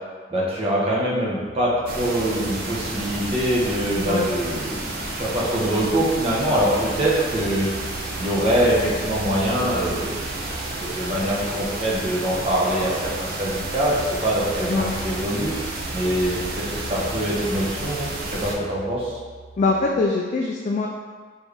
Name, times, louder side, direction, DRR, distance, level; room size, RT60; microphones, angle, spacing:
voice 1, 0.3-7.7 8.2-10.3 10.8-15.5 15.9-19.2, right 1 dB, 30° right, -6 dB, 1.0 m, -24 dB
sound 1, 1.4-19.9, right 3 dB, 5° left, 1.0 m, -42 dB
sound 2, 1.9-18.5, right 2 dB, 50° right, 0.6 m, -31 dB
voice 2, 19.6-20.9, left 3 dB, 40° left, -1 dB, 0.3 m, -23 dB
4.2 x 3.5 x 3.3 m, 1.5 s
head